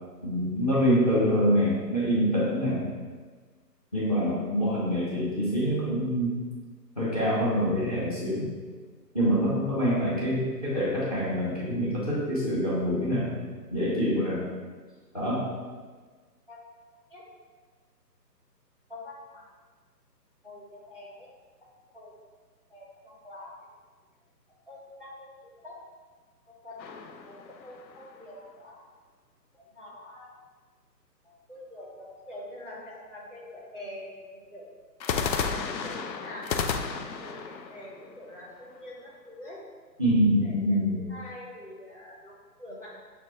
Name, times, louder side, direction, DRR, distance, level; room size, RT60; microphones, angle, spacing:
voice 1, 0.2-2.8 3.9-6.4 7.0-8.5 9.1-13.3 13.7-14.4 15.1-15.5 40.0-41.0, equal, 25° left, -8 dB, 0.7 m, -25 dB
voice 2, 18.9-19.5 20.4-21.3 21.9-22.1 22.7-23.5 24.7-25.3 25.6-25.8 26.6-27.4 27.6-28.8 29.5-30.3 31.2-34.7 35.1-36.7 37.1-39.6 40.4-43.0, left 1 dB, 35° right, -6 dB, 0.5 m, -45 dB
sound 1, 26.8-28.2 35.0-39.0, left 6 dB, 90° left, 0.6 m, -33 dB
6.2 x 2.2 x 2.9 m, 1.5 s
hypercardioid pair, 165°, 50 cm